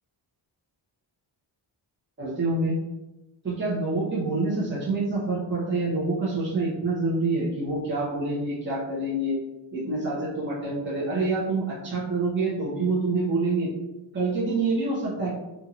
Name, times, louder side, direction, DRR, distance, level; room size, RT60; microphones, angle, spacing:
voice 1, 2.2-2.8 3.4-9.4 9.7-13.7 14.1-15.3, right 3 dB, 25° right, -8 dB, 0.9 m, -26 dB
2.7 x 2.5 x 2.9 m, 1.0 s
cardioid pair, 85°, 48 cm